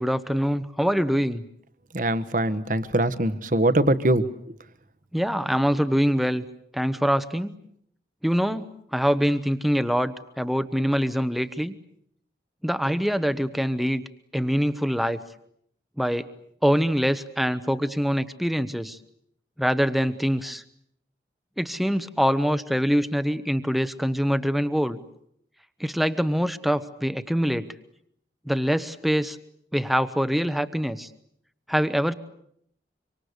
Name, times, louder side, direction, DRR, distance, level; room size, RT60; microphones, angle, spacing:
voice 1, 0.0-1.5 5.1-6.4 6.7-7.5 8.2-8.6 8.9-11.7 12.6-14.0 14.3-15.2 16.0-16.3 16.6-19.0 19.6-20.6 21.6-25.0 25.8-27.7 28.5-29.4 29.7-31.1 31.7-32.1, equal, ahead, 12 dB, 1.0 m, -24 dB
voice 2, 1.9-4.3, right 1 dB, 45° right, 13 dB, 1.3 m, -22 dB
25.5 x 25.0 x 8.2 m, 0.70 s
head